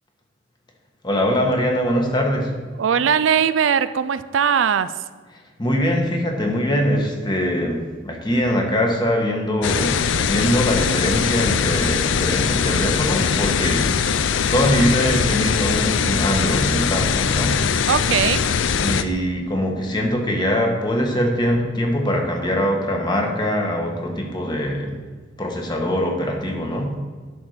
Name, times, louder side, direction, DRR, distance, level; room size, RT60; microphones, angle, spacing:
voice 1, 1.0-2.5 5.6-13.9 14.5-17.6 18.8-25.0 25.4-26.9, equal, 25° left, 1 dB, 1.4 m, -22 dB
voice 2, 2.8-4.9 17.9-18.4, right 7 dB, 80° right, 14 dB, 0.4 m, -19 dB
sound 1, 9.6-19.0, left 6 dB, 80° left, 0.5 m, -21 dB
11.0 x 4.4 x 6.5 m, 1.5 s
head